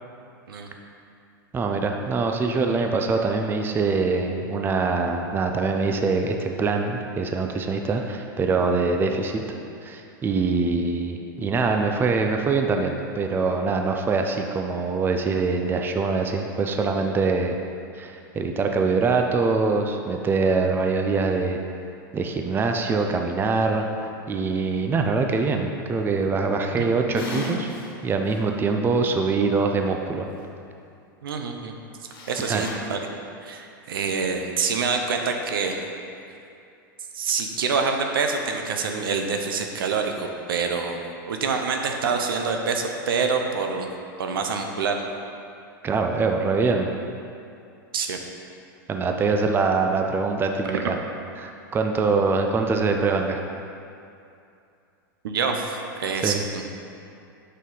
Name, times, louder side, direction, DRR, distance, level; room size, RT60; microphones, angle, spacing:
voice 1, 1.5-9.4 9.8-17.6 17.9-21.6 22.1-27.7 28.0-30.3 32.5-32.6 45.8-46.9 48.9-51.0 51.4-53.4 56.2-56.4, right 4 dB, 20° right, 4 dB, 0.5 m, -24 dB
sound 1, 27.1-27.9 28.3-28.4 32.1-32.7, left 2 dB, 80° left, 1.4 m, -34 dB
voice 2, 31.2-31.7 32.0-33.0 33.4-35.8 37.1-41.0 41.3-43.9 44.2-45.0 47.9-48.2 55.2-56.6, right 5 dB, 80° right, 4 dB, 0.7 m, -26 dB
6.2 x 5.4 x 3.9 m, 2.6 s
hypercardioid pair, 110°, 12 cm